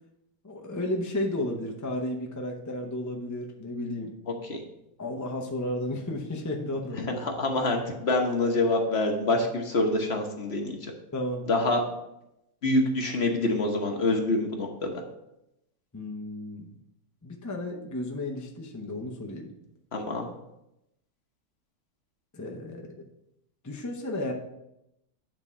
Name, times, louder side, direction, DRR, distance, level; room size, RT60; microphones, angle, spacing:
voice 1, 0.4-4.1 5.0-7.2 11.1-11.5 15.9-16.7 17.2-19.5 22.3-23.1 23.6-24.3, left 1 dB, 20° left, 1 dB, 0.4 m, -33 dB
voice 2, 7.2-10.9 11.5-11.8 12.6-14.9 19.9-20.3, left 2 dB, 45° left, 2 dB, 1.1 m, -26 dB
8.9 x 3.7 x 5.5 m, 0.85 s
omnidirectional pair, 1.8 m